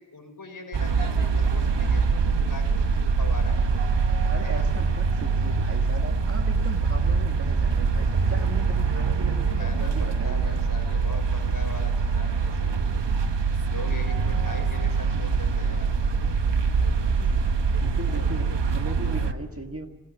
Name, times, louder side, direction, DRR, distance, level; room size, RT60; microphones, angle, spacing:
voice 1, 0.1-3.6 4.4-4.7 9.6-13.1 13.6-15.9, left 3 dB, 45° left, 3 dB, 5.8 m, -41 dB
sound 1, 0.7-19.3, right 5 dB, 70° right, 1.2 m, -24 dB
voice 2, 4.3-10.6 17.8-19.9, right 2 dB, 30° right, 4 dB, 1.7 m, -38 dB
21.0 x 18.0 x 9.4 m, 1.1 s
wide cardioid pair, 95°, 45 cm